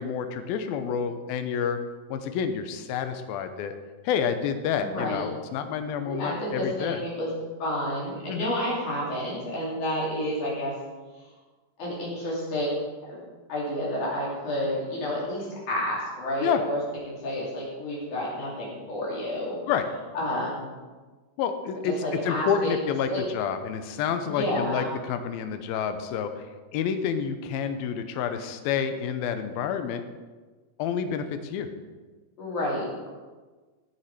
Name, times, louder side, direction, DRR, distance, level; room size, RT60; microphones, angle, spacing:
voice 1, 0.0-1.8 2.1-3.7 4.0-7.0 8.3-8.5 16.4-16.6 19.7-19.9 21.4-21.9 22.2-26.5 26.7-30.0 30.8-31.7, left 7 dB, 80° left, 8 dB, 2.6 m, -29 dB
voice 2, 4.8-5.2 6.1-7.3 7.6-10.7 11.8-12.7 13.1-13.2 13.5-16.8 17.1-19.6 20.1-20.7 21.8-22.8 23.1-23.3 24.3-24.9 32.4-33.1, left 1 dB, 55° left, -5 dB, 4.2 m, -30 dB
17.0 x 7.2 x 4.8 m, 1.3 s
omnidirectional pair, 4.5 m